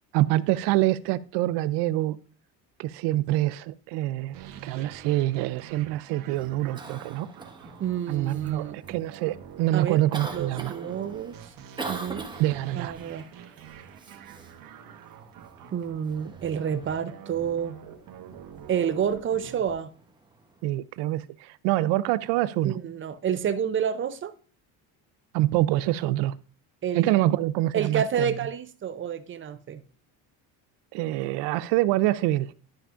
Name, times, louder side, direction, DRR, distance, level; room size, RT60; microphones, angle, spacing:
voice 1, 0.1-2.2 2.8-7.3 8.1-10.7 12.4-12.9 20.6-22.8 25.3-26.3 26.9-28.3 30.9-32.5, right 16 dB, 85° right, 0.6 m, -25 dB
sound 1, 4.3-19.7, right 8 dB, 55° right, 1.0 m, -46 dB
Cough, 6.3-20.8, right 3 dB, 10° right, 0.9 m, -44 dB
voice 2, 7.8-8.8 9.7-10.0 10.3-11.4 11.9-12.3 12.8-13.3 15.7-17.8 18.7-19.9 22.6-24.3 26.8-27.1 27.7-29.8, right 8 dB, 30° right, 0.5 m, -29 dB
11.0 x 5.8 x 2.5 m
cardioid pair, 125°, 40 cm